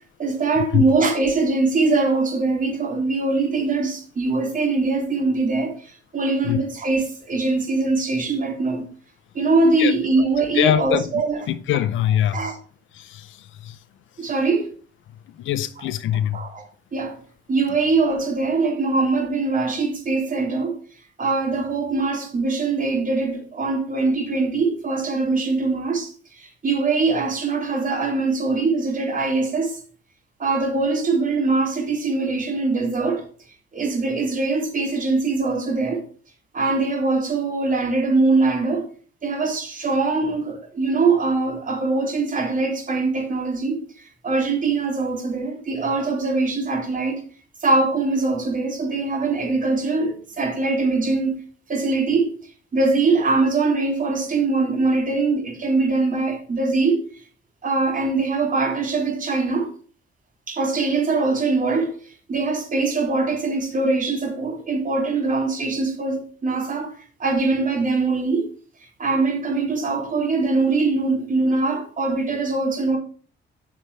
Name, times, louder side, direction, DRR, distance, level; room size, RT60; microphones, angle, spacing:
voice 1, 0.2-8.8 9.3-11.4 12.3-12.6 14.2-14.7 16.3-16.7 16.9-17.2 17.5-20.8 21.2-26.1 26.4-29.8 30.4-33.2 33.7-36.0 36.5-38.9 39.2-43.8 44.2-47.2 47.6-51.4 51.7-52.3 52.7-57.0 57.6-59.7 60.5-61.9 62.3-66.9 67.2-68.5 69.0-73.0, right 3 dB, 40° right, 3.1 m, -22 dB
voice 2, 10.5-12.5 12.9-13.8 14.2-14.3 15.3-16.4, left 11 dB, 80° left, 0.7 m, -23 dB
8.8 x 5.8 x 3.3 m
cardioid pair, 90°, 20 cm